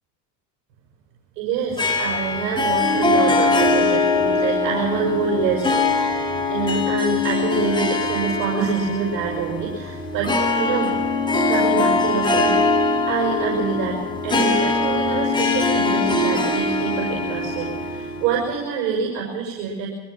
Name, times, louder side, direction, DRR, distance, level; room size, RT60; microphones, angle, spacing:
voice 1, 1.4-6.0 6.5-10.9 11.3-12.6 13.1-19.9, right 6 dB, 75° right, -1 dB, 6.5 m, -26 dB
Harp, 1.8-18.5, left 3 dB, 10° left, 6.1 m, -22 dB
24.0 x 16.0 x 7.5 m, 1.3 s
supercardioid pair, 90°, 49 cm